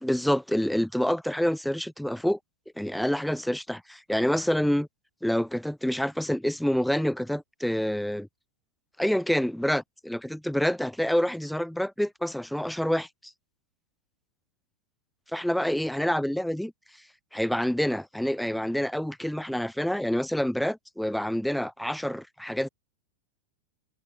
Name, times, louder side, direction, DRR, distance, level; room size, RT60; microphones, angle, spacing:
voice 1, 0.0-2.4 2.8-4.9 5.2-8.3 9.0-13.3 15.3-16.7 17.3-22.7, equal, ahead, 0.5 m, -27 dB
figure-of-eight pair, 90°, 0 cm